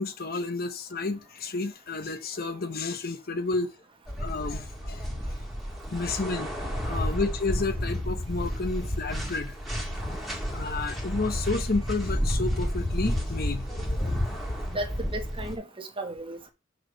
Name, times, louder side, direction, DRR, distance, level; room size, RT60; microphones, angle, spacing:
voice 1, 0.0-3.7 4.2-5.1 5.9-6.5 6.8-9.5 10.5-14.3, left 3 dB, 50° left, 1.0 m, -31 dB
sound 1, 4.1-15.5, equal, ahead, 2.3 m, -31 dB
voice 2, 14.7-16.5, right 1 dB, 25° right, 1.4 m, -35 dB
6.2 x 4.9 x 6.5 m
head